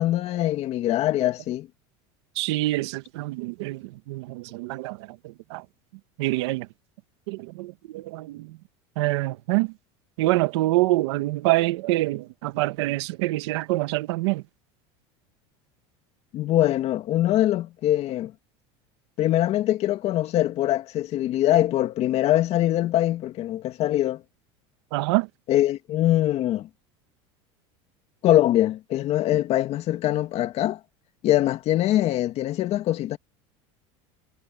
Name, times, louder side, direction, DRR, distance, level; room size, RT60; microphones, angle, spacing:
voice 1, 0.0-1.7 16.3-18.3 19.2-24.2 25.5-26.7 28.2-30.8 31.2-33.2, left 13 dB, 50° left, 2.4 m, -23 dB
voice 2, 2.3-5.6 6.2-6.7 7.3-8.6 9.0-9.7 10.2-14.4 24.9-25.3, right 19 dB, 85° right, 1.6 m, -26 dB
supercardioid pair, 130°, 14 cm